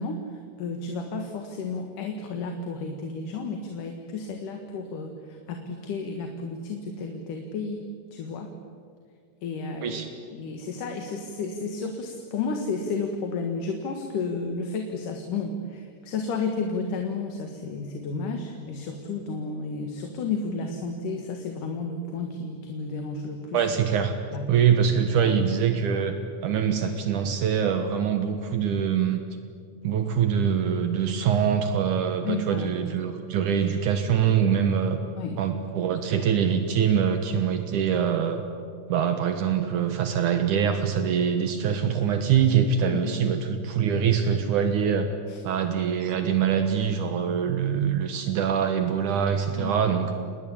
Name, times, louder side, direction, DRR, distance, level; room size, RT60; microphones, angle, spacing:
voice 1, 0.0-7.8 8.1-8.5 9.4-10.0 10.3-23.6 24.3-24.5 25.2-25.4 32.2-32.7 35.2-35.4 42.9-43.2 45.3-45.4 49.6-49.7, left 4 dB, 75° left, 4 dB, 3.3 m, -32 dB
voice 2, 23.5-24.1 24.5-26.2 26.4-29.3 29.8-35.0 35.4-38.4 38.9-45.1 45.4-50.1, right 7 dB, 70° right, 7 dB, 2.8 m, -24 dB
28.5 x 20.5 x 8.8 m, 2.2 s
omnidirectional pair, 3.8 m